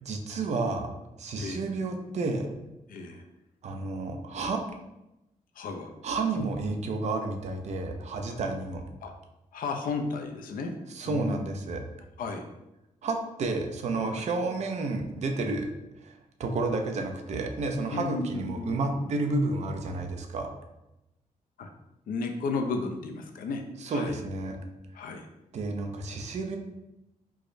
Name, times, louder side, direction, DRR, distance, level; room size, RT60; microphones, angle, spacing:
voice 1, 0.0-0.9 1.2-2.5 3.6-4.6 6.0-8.8 10.9-11.8 13.0-15.7 16.0-16.1 16.4-20.5 23.8-24.6 25.5-26.6, right 3 dB, 50° right, 3 dB, 0.4 m, -31 dB
voice 2, 1.4-1.7 2.9-3.2 5.6-5.9 6.4-6.5 9.0-9.1 9.5-10.7 11.0-11.4 12.2-12.5 14.1-14.2 17.9-18.7 21.6-21.7 22.1-24.2 25.0-25.3, left 4 dB, 85° left, 4 dB, 0.4 m, -33 dB
4.7 x 2.0 x 2.5 m, 0.93 s
wide cardioid pair, 175°, 14 cm